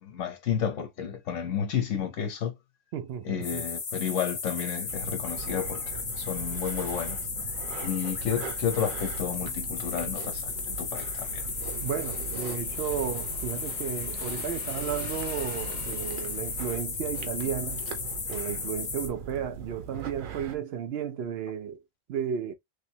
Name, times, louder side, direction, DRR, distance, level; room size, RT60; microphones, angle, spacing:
voice 1, 0.0-2.5 3.2-7.2 7.8-11.5, left 8 dB, 70° left, 1.2 m, -31 dB
voice 2, 2.9-3.6 11.8-17.8 18.3-21.8 22.1-22.5, right 8 dB, 65° right, 0.7 m, -33 dB
sound 1, 3.4-19.1, left 5 dB, 50° left, 0.9 m, -35 dB
sound 2, 4.9-20.6, right 7 dB, 90° right, 1.1 m, -40 dB
Motorcycle / Engine, 9.8-16.9, left 1 dB, 30° left, 1.5 m, -49 dB
3.3 x 3.0 x 2.8 m
omnidirectional pair, 1.4 m